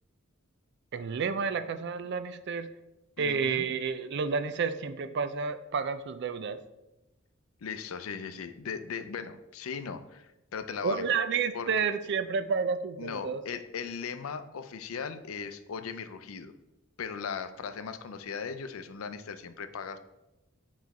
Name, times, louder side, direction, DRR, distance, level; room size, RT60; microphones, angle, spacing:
voice 1, 0.9-2.7 3.2-6.6 10.8-13.4, right 5 dB, 55° right, 10 dB, 0.4 m, -30 dB
voice 2, 3.2-3.7 7.6-11.0 11.5-11.9 13.0-16.5 17.0-20.0, left 6 dB, 85° left, 11 dB, 0.5 m, -38 dB
9.2 x 3.2 x 4.1 m, 0.96 s
head